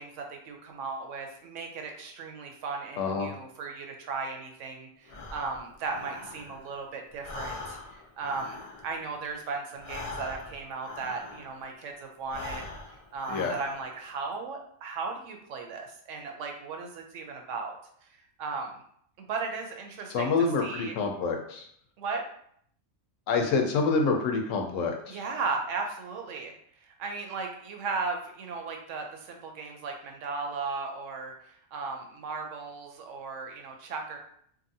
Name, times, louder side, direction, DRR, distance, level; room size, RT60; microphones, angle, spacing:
voice 1, 0.0-12.6 13.1-17.8 18.4-18.8 19.2-20.3 20.6-21.0 22.0-22.2 25.1-26.5 26.8-34.2, right 4 dB, 80° right, 3 dB, 0.9 m, -36 dB
voice 2, 3.0-3.3 13.3-13.5 20.1-21.6 23.3-25.2, left 4 dB, 90° left, 3 dB, 1.0 m, -27 dB
Breathing, 5.1-6.8 7.1-11.7 12.2-14.1, left 3 dB, 55° left, 0.4 m, -42 dB
2.7 x 2.5 x 2.6 m, 0.65 s
omnidirectional pair, 1.3 m